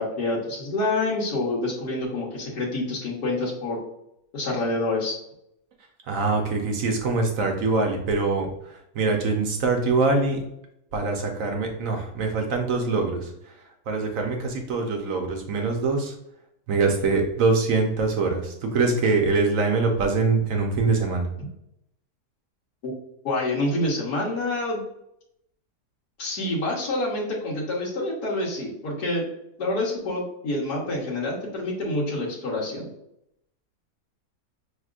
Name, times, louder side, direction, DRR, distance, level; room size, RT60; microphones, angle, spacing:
voice 1, 0.0-3.8 4.3-5.2 22.8-22.9 23.2-24.8 26.2-29.3 29.6-32.9, left 2 dB, 70° left, -5 dB, 1.5 m, -27 dB
voice 2, 6.1-10.4 10.9-13.3 13.9-16.1 16.7-21.2, right 3 dB, 60° right, 2 dB, 1.0 m, -24 dB
4.8 x 3.4 x 2.4 m, 0.79 s
omnidirectional pair, 1.7 m